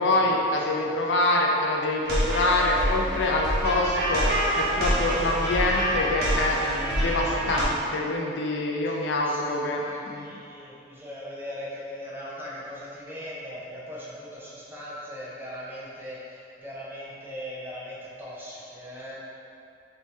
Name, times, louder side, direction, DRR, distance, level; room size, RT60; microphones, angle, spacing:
voice 1, 0.0-10.3, left 2 dB, 70° left, -1 dB, 0.4 m, -25 dB
voice 2, 0.7-1.1 8.8-19.2, equal, 10° right, -7 dB, 0.6 m, -40 dB
sound 1, 2.0-7.6, right 1 dB, 55° right, 0.6 m, -26 dB
3.5 x 2.8 x 3.0 m, 2.7 s
head